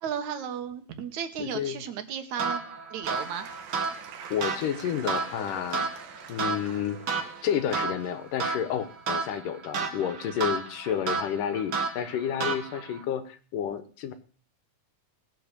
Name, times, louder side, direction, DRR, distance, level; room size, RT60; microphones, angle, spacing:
voice 1, 0.0-2.6 2.9-3.5, right 8 dB, 65° right, 9 dB, 2.5 m, -34 dB
voice 2, 1.4-1.8 4.3-5.8 6.3-7.1 7.4-14.1, left 9 dB, 75° left, 11 dB, 2.7 m, -30 dB
sound 1, 2.4-13.0, right 4 dB, 45° right, 1.6 m, -32 dB
Applause / Crowd, 3.0-9.3, right 8 dB, 90° right, 3.4 m, -46 dB
18.5 x 8.0 x 6.7 m, 0.40 s
omnidirectional pair, 3.9 m